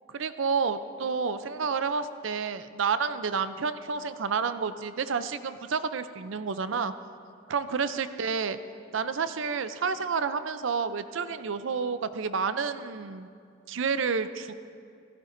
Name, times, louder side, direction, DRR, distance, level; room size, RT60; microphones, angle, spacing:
voice 1, 0.1-6.9 7.5-8.6 8.9-13.3 13.7-14.5, right 5 dB, 65° right, 12 dB, 0.5 m, -30 dB
15.5 x 15.0 x 2.6 m, 2.3 s
head